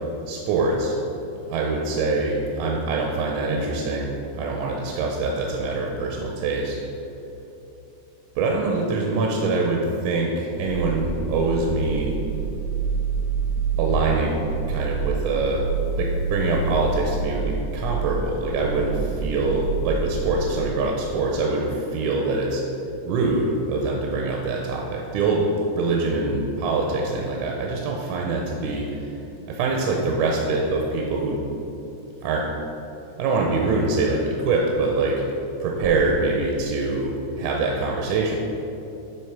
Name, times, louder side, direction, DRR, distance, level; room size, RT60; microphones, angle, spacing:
voice 1, 0.3-1.0 1.5-6.8 8.4-12.2 13.8-22.6 23.1-25.5 25.7-29.2 29.5-31.4 32.2-32.5 33.2-35.2 35.6-38.4, right 3 dB, 80° right, 0 dB, 2.0 m, -24 dB
sound 1, 10.6-20.3, right 5 dB, 60° left, 2.6 m, -27 dB
8.9 x 3.5 x 4.5 m, 2.9 s
omnidirectional pair, 3.4 m